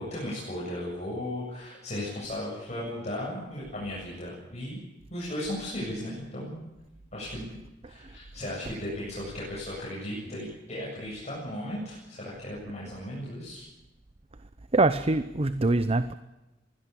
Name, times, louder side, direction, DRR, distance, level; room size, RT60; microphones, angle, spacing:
voice 1, 0.0-4.8 5.1-6.6 7.1-7.4 7.8-13.6, left 1 dB, 40° left, 7.9 m, -36 dB
voice 2, 14.7-16.1, right 2 dB, 35° right, 0.7 m, -24 dB
24.0 x 17.0 x 8.6 m
head